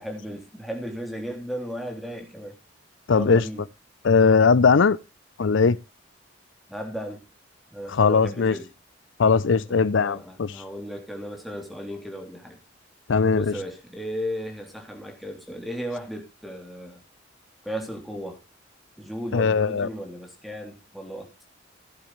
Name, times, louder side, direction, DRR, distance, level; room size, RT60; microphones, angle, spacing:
voice 1, 0.0-2.5 3.1-3.6 6.7-7.2 7.7-8.7 9.7-12.6 13.3-17.0 17.6-18.4 19.0-21.3, equal, ahead, 3.4 m, -35 dB
voice 2, 3.1-3.4 4.0-5.0 5.4-5.8 7.9-8.5 9.2-10.6 13.1-13.5 19.3-19.9, left 5 dB, 75° left, 0.5 m, -19 dB
16.0 x 11.0 x 3.2 m
head